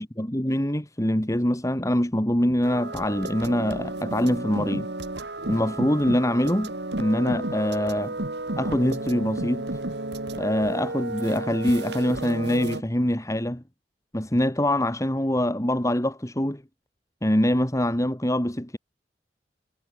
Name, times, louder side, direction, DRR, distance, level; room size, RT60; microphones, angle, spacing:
voice 1, 0.0-4.9 5.5-6.7 7.0-8.2 8.6-9.7 10.4-13.6 14.1-16.6 17.2-18.8, left 1 dB, 20° left, 2.4 m, -24 dB
sound 1, 2.6-12.8, right 2 dB, 70° right, 2.7 m, -32 dB
head